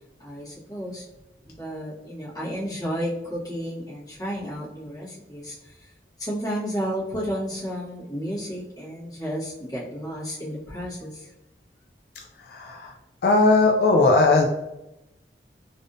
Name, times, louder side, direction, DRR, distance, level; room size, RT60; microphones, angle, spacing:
voice 1, 0.2-1.0 1.4-5.9 6.2-11.3, equal, 20° left, -8 dB, 1.1 m, -32 dB
voice 2, 12.4-12.9 13.2-14.5, left 3 dB, 60° left, 0 dB, 0.3 m, -18 dB
3.4 x 2.6 x 2.5 m, 0.94 s
head